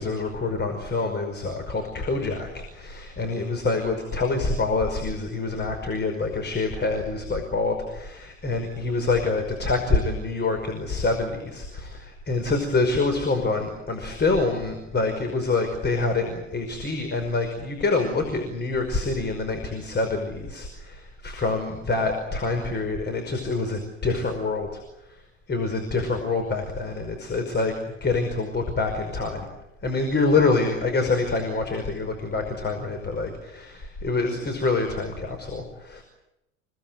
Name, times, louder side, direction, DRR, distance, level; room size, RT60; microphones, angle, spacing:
voice 1, 0.0-24.8 25.5-27.7 28.0-29.5 29.8-36.0, left 3 dB, 25° left, 5 dB, 5.4 m, -26 dB
29.5 x 18.5 x 9.3 m, 0.89 s
figure-of-eight pair, 75°, 41 cm